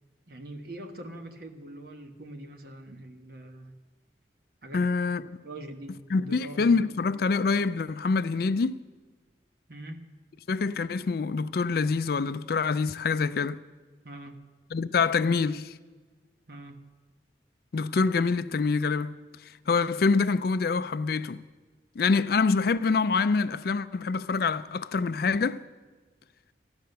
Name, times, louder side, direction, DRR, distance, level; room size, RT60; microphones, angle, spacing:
voice 1, 0.3-3.8 4.6-4.9 5.4-6.9 9.7-10.0 14.0-14.4 16.5-16.8, right 1 dB, 55° right, 1.2 m, -43 dB
voice 2, 4.7-5.3 6.1-8.8 10.5-13.6 14.7-15.7 17.7-19.2 19.7-21.4 22.0-25.6, left 4 dB, 55° left, 0.4 m, -25 dB
14.0 x 10.5 x 6.7 m
head